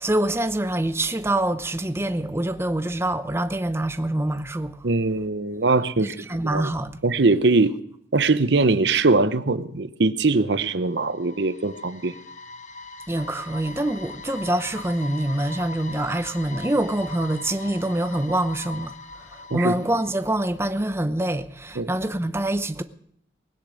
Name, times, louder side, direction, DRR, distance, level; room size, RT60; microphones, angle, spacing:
voice 1, 0.0-4.9 6.0-7.0 13.1-22.8, right 1 dB, 15° right, 0.7 m, -25 dB
voice 2, 4.8-6.2 6.5-6.7 7.0-7.7 8.1-12.1 19.5-19.7 21.8-21.9, right 3 dB, 65° right, 0.8 m, -21 dB
sound 1, 10.6-20.6, left 3 dB, 40° left, 0.8 m, -41 dB
20.0 x 10.5 x 6.4 m
head